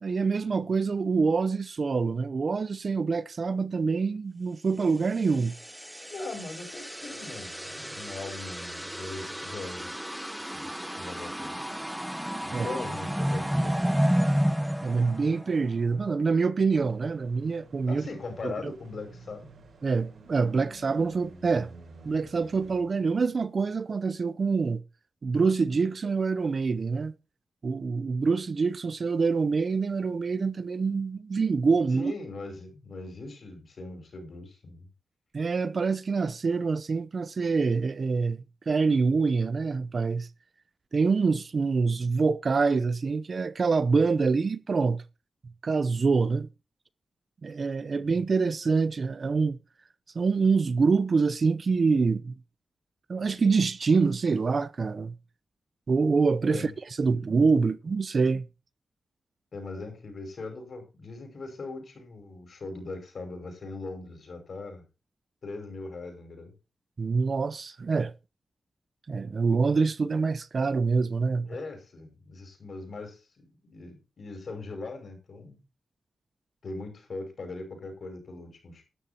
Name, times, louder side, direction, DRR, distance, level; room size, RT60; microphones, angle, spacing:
voice 1, 0.0-5.5 12.5-12.7 14.8-18.0 18.4-18.7 19.8-21.7 22.0-24.8 25.2-27.1 27.6-32.1 35.3-40.3 40.9-45.0 45.6-46.5 47.4-49.6 50.1-52.3 53.1-55.1 55.9-56.7 57.0-58.5 67.0-68.1 69.1-71.5, right 4 dB, 45° right, 0.7 m, -25 dB
sound 1, 5.2-15.9, equal, 5° right, 0.7 m, -31 dB
voice 2, 6.1-9.9 10.5-11.5 12.4-14.0 17.9-19.5 31.9-34.9 56.5-56.7 57.0-57.3 59.5-64.8 65.4-66.5 71.5-75.6 76.6-78.8, left 3 dB, 55° left, 5.6 m, -40 dB
sound 2, 16.7-22.8, right 2 dB, 70° right, 5.5 m, -50 dB
12.5 x 10.0 x 4.2 m
wide cardioid pair, 120°, 0 cm